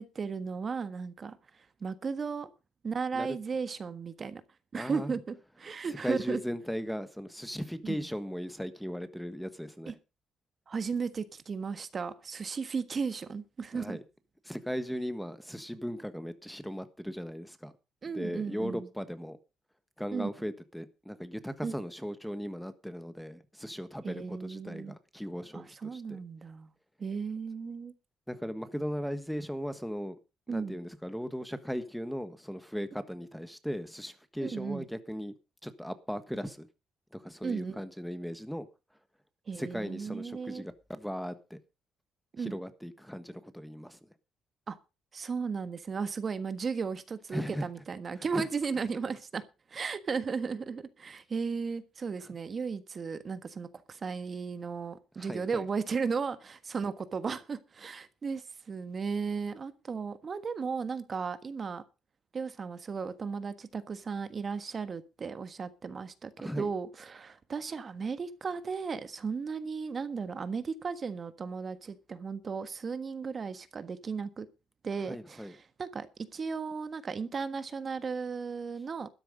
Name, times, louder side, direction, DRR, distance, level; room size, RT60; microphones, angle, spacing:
voice 1, 0.0-2.5 2.8-4.4 4.7-6.4 7.8-8.0 9.9-10.0 10.7-14.0 18.0-18.9 20.1-20.3 21.6-21.7 24.0-24.9 25.5-26.7 27.0-27.9 30.5-30.8 34.4-34.9 37.4-37.8 39.5-40.6 42.3-42.5 44.7-44.8 45.1-49.4 49.7-61.8 62.3-74.5 74.8-76.1 76.3-79.1, right 5 dB, 40° right, 1.4 m, -35 dB
voice 2, 4.8-5.1 5.9-9.9 13.7-14.0 14.4-17.7 18.1-19.4 20.0-26.2 28.3-30.2 30.5-35.3 35.6-36.7 37.1-38.7 39.5-41.6 42.4-44.0 47.3-47.7 48.2-48.5 52.2-52.3 55.2-55.6 66.4-66.7 75.1-75.5, equal, ahead, 1.5 m, -37 dB
13.0 x 10.0 x 5.3 m
cardioid pair, 90°, 0 cm